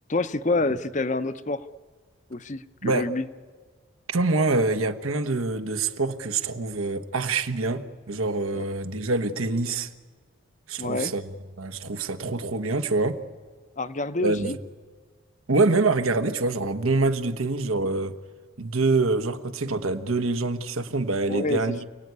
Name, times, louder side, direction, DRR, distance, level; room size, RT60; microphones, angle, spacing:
voice 1, 0.1-1.7 2.3-3.2 8.5-8.6 10.8-11.1 13.8-14.6 21.3-21.6, left 2 dB, 35° left, 0.7 m, -27 dB
voice 2, 4.1-9.9 10.7-13.2 14.2-14.6 15.5-18.2 18.6-21.8, right 3 dB, 90° right, 1.3 m, -25 dB
28.5 x 18.0 x 9.6 m
head